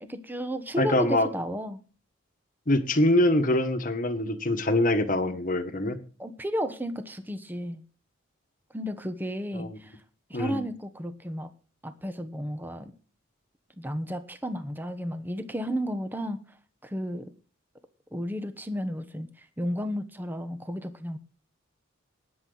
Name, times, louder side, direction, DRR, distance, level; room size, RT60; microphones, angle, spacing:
voice 1, 0.0-1.8 6.2-7.8 8.7-10.0 10.3-11.5 11.8-12.9 13.8-16.6 16.8-17.3 18.1-21.2, equal, 10° right, 9 dB, 1.0 m, -33 dB
voice 2, 0.8-1.3 2.7-6.0 9.5-9.8 10.3-10.6, left 1 dB, 40° left, 8 dB, 1.4 m, -24 dB
19.0 x 7.7 x 4.0 m, 0.38 s
head